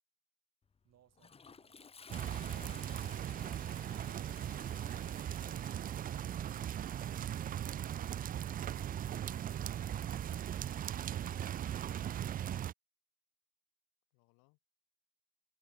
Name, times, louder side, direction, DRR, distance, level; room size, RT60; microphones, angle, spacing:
Toilet flush, 0.7-9.0, left 5 dB, 15° left, 0.8 m, -57 dB
voice 1, 0.8-2.7 8.0-8.3, right 12 dB, 50° right, 7.4 m, -71 dB
sound 1, 2.1-12.7, right 10 dB, 25° right, 0.4 m, -38 dB
voice 2, 6.5-7.4 8.7-10.1 14.1-14.6, left 36 dB, 85° left, 4.4 m, -67 dB
cardioid pair, 125°, 33 cm